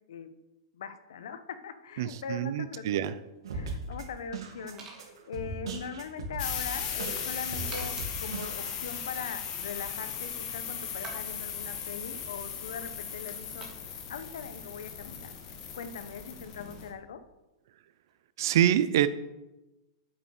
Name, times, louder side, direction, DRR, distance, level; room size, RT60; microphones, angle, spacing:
voice 1, 0.7-3.2 3.5-13.7 14.1-15.3 15.7-17.2, left 6 dB, 75° left, 11 dB, 1.1 m, -41 dB
voice 2, 2.0-3.1 18.4-19.1, right 11 dB, 50° right, 12 dB, 0.6 m, -26 dB
sound 1, 2.5-18.3, right 3 dB, 20° right, 2.3 m, -54 dB
sound 2, 3.4-8.8, right 3 dB, 90° right, 2.7 m, -39 dB
sound 3, 6.4-16.9, left 7 dB, 30° left, 1.4 m, -37 dB
8.9 x 7.0 x 6.6 m, 1.0 s
supercardioid pair, 170°, 2 cm